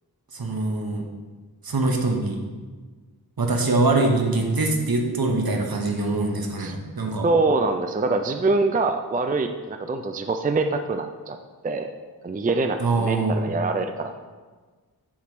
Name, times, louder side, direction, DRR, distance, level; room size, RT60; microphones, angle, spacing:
voice 1, 0.3-1.1 1.6-2.4 3.4-7.3 12.8-13.5, right 2 dB, 65° right, 2 dB, 1.1 m, -23 dB
voice 2, 7.2-11.4 11.6-11.9 12.2-14.2, right 3 dB, 25° right, 7 dB, 0.4 m, -24 dB
8.4 x 3.1 x 6.0 m, 1.4 s
wide cardioid pair, 55°, 39 cm